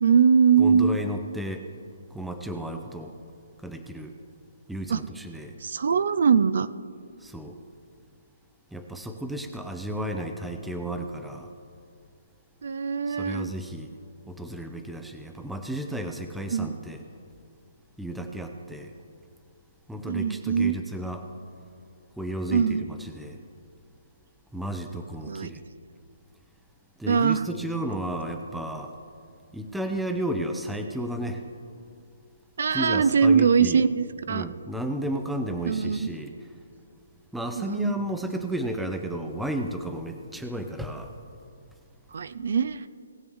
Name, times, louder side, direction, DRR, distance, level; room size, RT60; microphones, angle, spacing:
voice 1, 0.0-1.0 4.9-5.0 5.6-6.7 12.6-13.5 16.5-16.7 20.1-20.8 22.5-22.9 25.3-25.5 27.1-27.4 32.6-34.5 35.6-36.1 37.6-38.1 42.1-42.8, right 6 dB, 60° right, 15 dB, 0.4 m, -22 dB
voice 2, 0.6-1.6 2.1-3.1 3.6-4.1 4.7-5.5 7.2-7.6 8.7-11.5 13.1-13.9 14.3-17.0 18.0-18.9 19.9-21.2 22.2-23.4 24.5-25.6 27.0-28.9 29.5-31.4 32.7-33.8 34.3-36.3 37.3-41.1, right 1 dB, ahead, 5 dB, 0.5 m, -33 dB
18.5 x 7.7 x 3.6 m, 2.4 s
hypercardioid pair, 170°, 0 cm